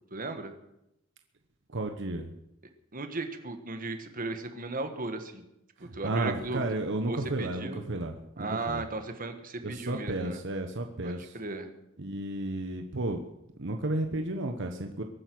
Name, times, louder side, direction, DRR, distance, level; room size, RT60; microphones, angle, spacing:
voice 1, 0.1-0.5 2.9-5.4 5.8-6.6 7.1-7.8 8.4-10.4 11.0-11.7, right 2 dB, 40° right, 7 dB, 1.5 m, -36 dB
voice 2, 1.7-2.3 5.8-8.8 9.6-11.3 12.0-13.2 13.6-15.0, right 2 dB, 60° right, 5 dB, 1.1 m, -33 dB
22.5 x 9.4 x 6.2 m, 0.84 s
head